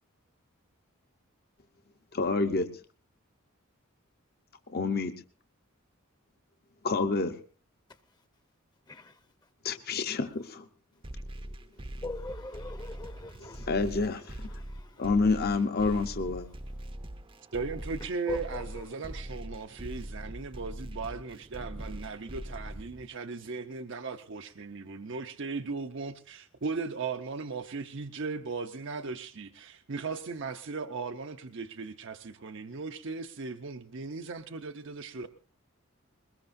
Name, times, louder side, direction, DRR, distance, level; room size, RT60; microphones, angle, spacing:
voice 1, 2.1-2.7 4.7-5.1 6.8-7.4 9.6-10.6 13.7-14.5 15.0-16.5, left 3 dB, 45° left, 0.8 m, -28 dB
voice 2, 8.9-9.2 12.0-13.8 14.4-15.1 18.3-18.8, left 3 dB, 20° left, 0.8 m, -41 dB
sound 1, 11.0-23.0, right 1 dB, 25° right, 0.7 m, -42 dB
voice 3, 17.5-35.3, right 4 dB, 60° right, 0.7 m, -37 dB
21.5 x 20.5 x 2.6 m
head